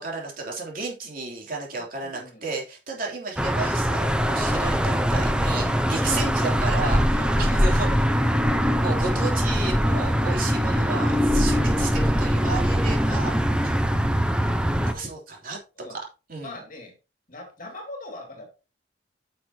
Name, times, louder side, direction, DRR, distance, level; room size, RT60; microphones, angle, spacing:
voice 1, 0.0-8.1 8.8-13.3 13.6-13.7 14.9-15.6 16.3-16.6, right 3 dB, 50° right, 3.0 m, -33 dB
voice 2, 1.7-2.5 7.1-7.5 15.8-16.0 16.4-17.0 17.3-18.5, left 2 dB, 45° left, 2.3 m, -42 dB
sound 1, 3.4-14.9, equal, 5° right, 0.7 m, -22 dB
9.9 x 6.4 x 2.9 m
head